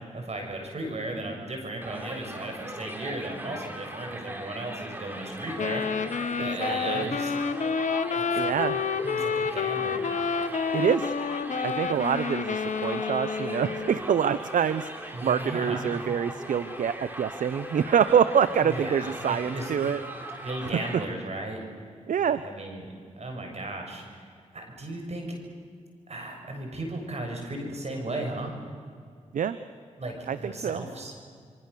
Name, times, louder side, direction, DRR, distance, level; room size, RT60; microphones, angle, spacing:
voice 1, 0.1-7.3 8.0-8.7 9.0-10.0 15.1-15.8 18.6-19.7 20.4-21.6 22.3-24.2 24.5-25.3 26.1-28.5 30.0-31.1, right 2 dB, 55° right, 3 dB, 6.5 m, -36 dB
Crowd, 1.8-21.1, right 1 dB, 15° right, 3.7 m, -40 dB
Wind instrument woodwind instrument, 5.6-14.1, left 5 dB, 70° left, 1.2 m, -29 dB
voice 2, 6.4-7.1 8.4-8.8 10.7-11.1 11.6-20.0 20.3-20.5 22.1-22.4 29.3-29.6 30.3-30.9, right 8 dB, 80° right, 13 dB, 0.7 m, -26 dB
27.0 x 23.5 x 6.9 m, 2.1 s
cardioid pair, 50°, 13 cm